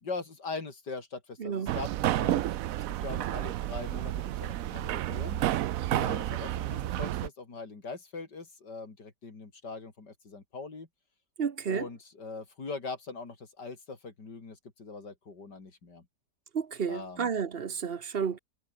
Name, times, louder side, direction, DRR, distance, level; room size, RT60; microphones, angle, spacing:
voice 1, 0.0-2.4 3.0-5.4 5.9-10.9 11.7-16.1 16.9-17.3, left 4 dB, 90° left, 4.3 m, -41 dB
sound 1, 1.7-7.3, right 13 dB, 70° right, 0.9 m, -31 dB
voice 2, 11.4-11.9 16.5-18.4, right 6 dB, 40° right, 1.0 m, -31 dB
omnidirectional pair, 1.8 m